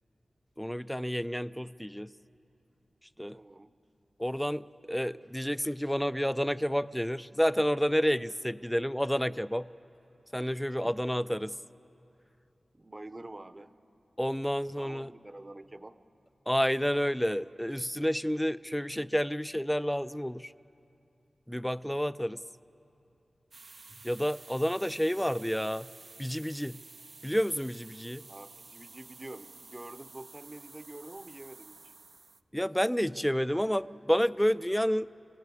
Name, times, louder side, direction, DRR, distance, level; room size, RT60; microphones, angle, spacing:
voice 1, 0.6-2.1 3.2-3.4 4.2-9.7 10.3-11.5 14.2-15.1 16.5-20.5 21.5-22.4 24.0-25.9 26.2-26.8 27.2-28.2 32.5-35.1, equal, 5° left, 16 dB, 0.4 m, -30 dB
voice 2, 3.3-3.8 10.6-11.0 12.7-13.8 14.8-16.0 28.3-31.9, right 2 dB, 30° right, 12 dB, 0.8 m, -47 dB
sound 1, 23.5-32.4, right 3 dB, 60° right, 0.5 m, -52 dB
25.5 x 16.0 x 8.3 m, 2.7 s
wide cardioid pair, 65°, 0 cm